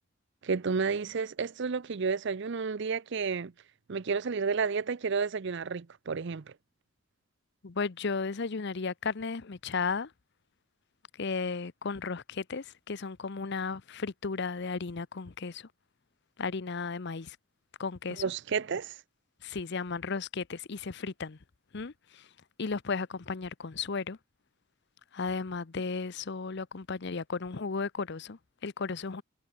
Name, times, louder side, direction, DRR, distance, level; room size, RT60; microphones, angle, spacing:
voice 1, 0.4-3.5 3.9-6.5 18.2-19.0, right 5 dB, 60° right, 0.6 m, -31 dB
voice 2, 7.6-10.1 11.2-15.7 16.4-17.4 17.8-18.2 19.4-21.4 21.7-22.2 22.6-24.2 25.1-29.2, left 4 dB, 55° left, 0.7 m, -34 dB
head